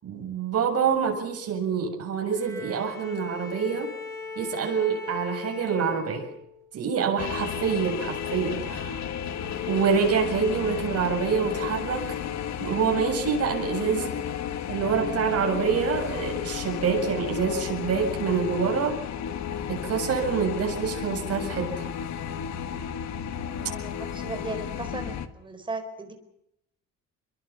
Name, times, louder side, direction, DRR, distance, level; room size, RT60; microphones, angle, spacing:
voice 1, 0.0-3.9 4.4-6.3 6.7-9.1 9.7-12.2 12.6-14.1 14.7-19.0 19.7-21.9, right 6 dB, 50° right, 2 dB, 7.4 m, -26 dB
Bowed string instrument, 2.3-6.7, left 3 dB, 10° left, 5.3 m, -39 dB
sound 1, 7.2-25.3, left 8 dB, 60° left, 1.8 m, -33 dB
voice 2, 23.7-26.1, right 2 dB, 15° right, 6 dB, 4.5 m, -36 dB
29.5 x 23.0 x 6.0 m, 0.81 s
cardioid pair, 170°, 31 cm